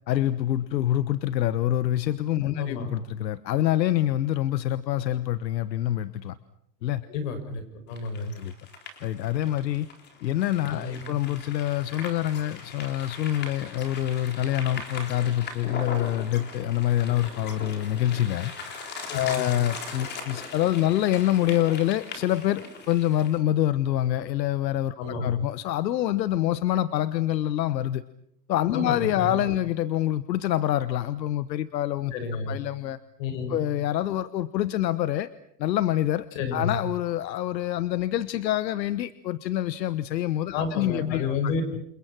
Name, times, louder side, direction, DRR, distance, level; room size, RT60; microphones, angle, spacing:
voice 1, 0.1-6.4 6.8-7.0 8.3-8.5 9.0-9.9 10.2-18.5 19.1-24.9 25.2-28.0 28.5-32.1 32.5-33.0 33.5-35.3 35.6-36.3 36.5-41.3, left 13 dB, 80° left, 14 dB, 1.3 m, -26 dB
voice 2, 2.4-2.9 7.1-8.3 10.7-11.0 19.1-19.4 25.0-25.4 28.7-29.4 32.1-32.6 33.2-33.6 36.3-36.8 40.5-41.6, left 4 dB, 50° left, 7 dB, 7.0 m, -31 dB
sound 1, 7.9-23.4, left 4 dB, 20° left, 3.9 m, -39 dB
29.0 x 28.0 x 6.1 m, 0.73 s
supercardioid pair, 160°, 50 cm